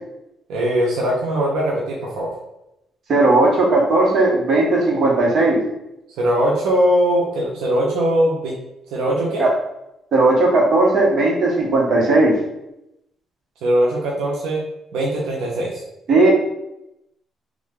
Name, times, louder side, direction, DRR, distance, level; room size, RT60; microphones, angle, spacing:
voice 1, 0.5-2.3 6.2-8.6 8.9-9.4 13.6-14.6 14.9-15.8, equal, 90° right, -3 dB, 0.7 m, -20 dB
voice 2, 3.1-5.6 9.4-9.5 10.1-12.3 16.1-16.3, right 2 dB, 55° right, -3 dB, 1.1 m, -16 dB
3.2 x 2.4 x 3.7 m, 0.86 s
cardioid pair, 90°, 0 cm